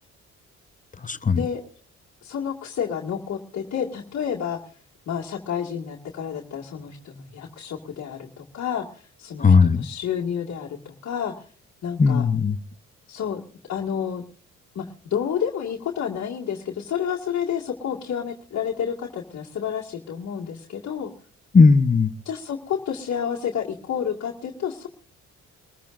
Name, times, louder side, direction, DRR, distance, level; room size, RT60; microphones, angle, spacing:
voice 1, 1.0-1.4 9.4-9.9 12.0-12.6 21.5-22.1, left 4 dB, 25° left, 1.0 m, -17 dB
voice 2, 2.2-4.6 5.1-11.4 11.8-12.2 13.1-13.4 13.7-14.2 14.8-14.9 15.1-21.1 22.3-24.9, left 8 dB, 60° left, 2.1 m, -30 dB
24.0 x 14.5 x 2.5 m
cardioid pair, 90°, 30 cm